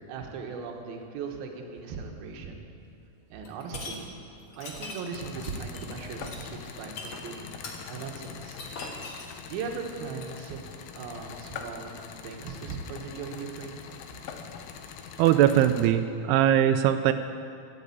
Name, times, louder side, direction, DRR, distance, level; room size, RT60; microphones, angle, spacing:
voice 1, 0.1-2.6 3.3-4.1 4.6-7.6 7.9-8.6 9.5-10.7 11.0-11.9 12.2-13.8, right 5 dB, 70° right, 2 dB, 2.9 m, -38 dB
sound 1, 3.4-4.0 4.5-10.4, left 3 dB, 55° left, 1.3 m, -41 dB
sound 2, 5.1-15.9, left 7 dB, 75° left, 2.1 m, -43 dB
voice 2, 15.2-17.1, right 11 dB, 90° right, 9 dB, 2.6 m, -21 dB
12.5 x 8.5 x 8.4 m, 2.6 s
omnidirectional pair, 4.6 m